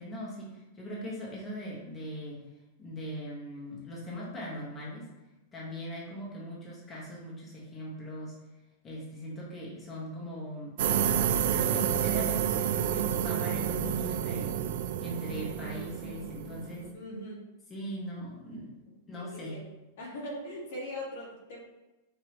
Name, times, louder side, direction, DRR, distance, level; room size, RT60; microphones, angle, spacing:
voice 1, 0.0-2.4 2.8-5.1 5.5-8.3 8.8-10.8 11.5-14.5 15.0-16.9 17.7-18.7 19.1-19.6, equal, 20° left, -5 dB, 1.1 m, -40 dB
sound 1, 10.8-16.9, right 9 dB, 65° right, 0.3 m, -29 dB
voice 2, 16.9-17.5 19.1-19.7 20.0-21.6, equal, 70° left, -3 dB, 1.5 m, -40 dB
4.8 x 2.8 x 2.9 m, 1.0 s
supercardioid pair, 150°, 0 cm